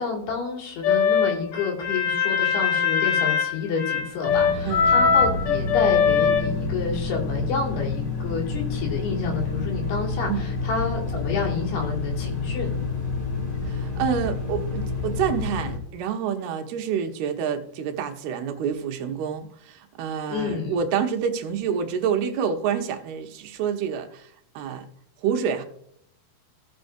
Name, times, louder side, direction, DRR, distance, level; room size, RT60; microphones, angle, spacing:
voice 1, 0.0-12.7 20.3-20.8, left 5 dB, 80° left, 0 dB, 4.2 m, -29 dB
sound 1, 0.8-6.4, left 6 dB, 60° left, 3.0 m, -21 dB
sound 2, 4.3-15.8, left 3 dB, 40° left, 1.9 m, -29 dB
voice 2, 4.6-5.0 10.3-10.5 13.7-24.9 25.2-25.7, right 7 dB, 80° right, 5 dB, 2.8 m, -28 dB
16.5 x 6.4 x 2.6 m, 0.71 s
omnidirectional pair, 4.5 m